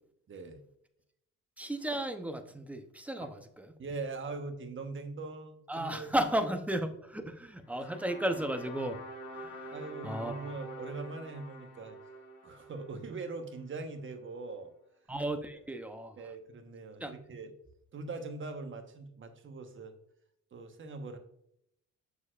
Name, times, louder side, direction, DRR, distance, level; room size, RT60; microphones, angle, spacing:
voice 1, 0.3-0.6 3.2-3.3 3.8-6.1 7.2-7.3 9.7-12.0 12.4-14.7 16.2-17.5 17.9-19.9 20.5-21.2, right 3 dB, 40° right, 1.2 m, -41 dB
voice 2, 1.6-3.7 5.7-9.0 9.3-9.7 10.0-10.3 15.1-16.2 17.0-17.1, right 1 dB, 5° right, 0.7 m, -34 dB
sound 1, 7.6-13.9, equal, 65° left, 1.9 m, -47 dB
6.9 x 6.6 x 2.4 m
cardioid pair, 110°, 32 cm